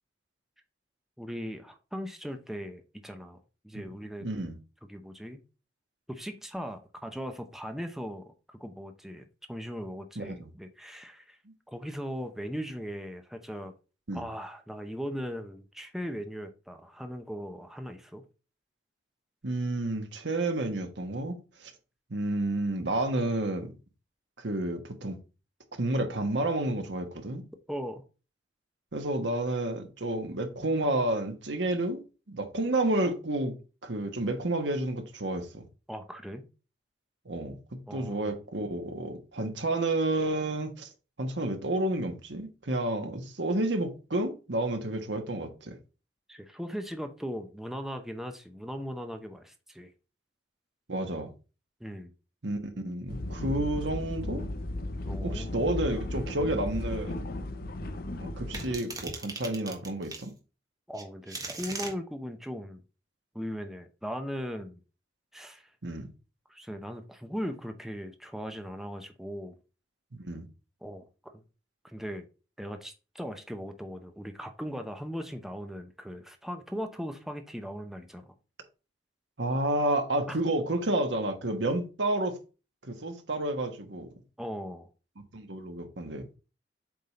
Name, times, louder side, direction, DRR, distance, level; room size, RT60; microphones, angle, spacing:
voice 1, 1.2-3.4 3.6-4.3 4.9-5.4 6.1-8.3 8.6-11.4 11.7-13.7 14.1-18.2 27.7-28.0 35.9-36.5 37.9-38.3 46.3-49.9 51.8-52.1 55.0-55.6 60.9-62.8 63.3-64.8 65.3-65.7 66.5-69.6 70.8-71.0 71.3-71.4 71.8-72.3 72.6-78.3 80.3-80.4 84.4-84.9, equal, ahead, 0.7 m, -38 dB
voice 2, 4.2-4.6 10.1-10.5 14.1-14.2 19.4-21.7 22.1-23.7 24.4-25.2 25.8-27.4 28.9-32.0 32.3-35.7 37.2-37.6 37.9-40.9 41.2-45.8 50.9-51.3 52.4-54.5 55.2-57.2 58.2-60.3 65.8-66.1 70.1-70.5 79.4-82.4 82.8-84.1 85.2-86.4, right 1 dB, 80° right, 1.3 m, -30 dB
sound 1, 53.1-58.8, left 1 dB, 55° left, 0.7 m, -35 dB
sound 2, 58.5-60.3 60.9-61.9, right 3 dB, 20° right, 1.4 m, -38 dB
7.7 x 3.7 x 4.2 m
head